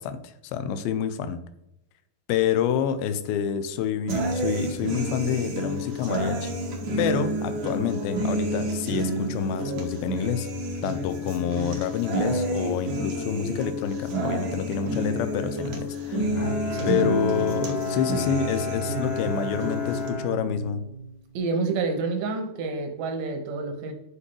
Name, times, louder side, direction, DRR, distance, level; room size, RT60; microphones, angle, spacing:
voice 1, 0.0-1.4 2.3-6.5 7.0-10.5 10.8-16.2 16.9-20.8, left 8 dB, 90° left, 11 dB, 2.5 m, -28 dB
sound 1, 4.1-20.1, right 1 dB, 90° right, 1.0 m, -29 dB
Bowed string instrument, 16.3-21.2, left 2 dB, 70° left, 1.6 m, -32 dB
voice 2, 16.7-17.1 21.3-23.9, right 4 dB, 70° right, 5 dB, 1.8 m, -28 dB
8.3 x 5.3 x 3.2 m, 0.85 s
omnidirectional pair, 4.2 m